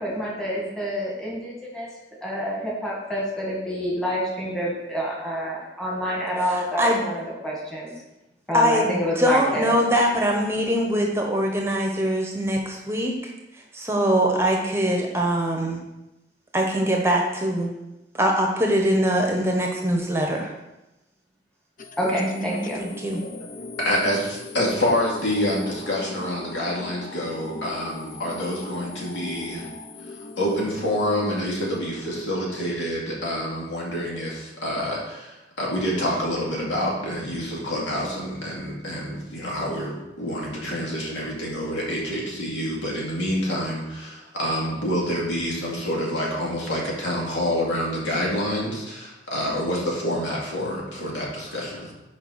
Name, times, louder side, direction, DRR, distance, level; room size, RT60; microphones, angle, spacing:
voice 1, 0.0-1.9 2.2-7.9 8.5-9.8 22.0-22.8, equal, 5° left, -5 dB, 1.8 m, -28 dB
voice 2, 6.4-7.0 8.5-13.3 13.7-15.8 16.5-17.7 18.1-20.5 22.2-23.2, equal, 15° right, 1 dB, 0.9 m, -23 dB
sound 1, 21.8-31.8, left 2 dB, 45° left, 0.6 m, -39 dB
voice 3, 23.8-29.7 30.4-51.9, equal, 85° left, -4 dB, 2.5 m, -27 dB
7.0 x 5.0 x 5.7 m, 0.97 s
head